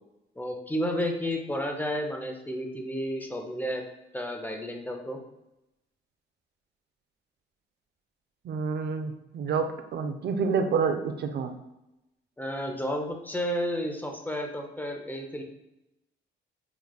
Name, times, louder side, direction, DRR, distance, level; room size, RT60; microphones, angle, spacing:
voice 1, 0.4-3.8 4.1-5.2 12.4-15.4, equal, 10° left, 3 dB, 0.5 m, -31 dB
voice 2, 8.4-11.5, right 5 dB, 55° right, 6 dB, 0.5 m, -28 dB
4.8 x 2.3 x 2.3 m, 0.91 s
cardioid pair, 90°, 20 cm